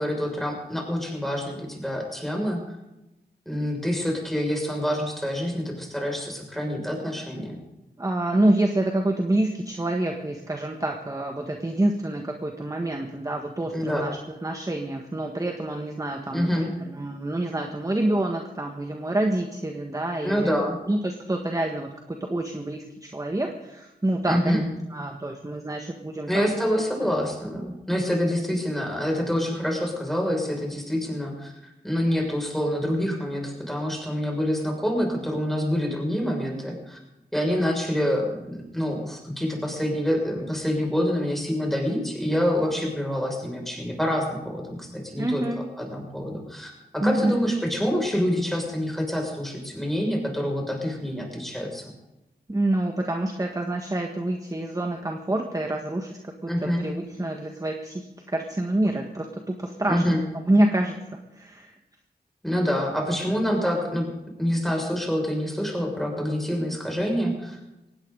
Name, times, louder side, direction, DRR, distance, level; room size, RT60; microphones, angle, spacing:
voice 1, 0.0-2.6 3.5-7.6 13.7-14.1 16.3-16.7 20.2-20.8 24.3-24.7 26.3-31.5 31.8-37.0 37.3-45.4 45.8-51.8 56.5-56.8 59.9-60.2 62.4-64.1 64.4-67.6, equal, ahead, 0 dB, 6.2 m, -26 dB
voice 2, 8.0-20.5 20.9-24.6 24.9-26.4 26.8-26.9 45.1-45.7 47.0-47.4 52.5-60.0 60.3-61.7, right 1 dB, 20° right, 3 dB, 1.5 m, -27 dB
19.0 x 16.5 x 4.0 m, 0.95 s
cardioid pair, 65°, 17 cm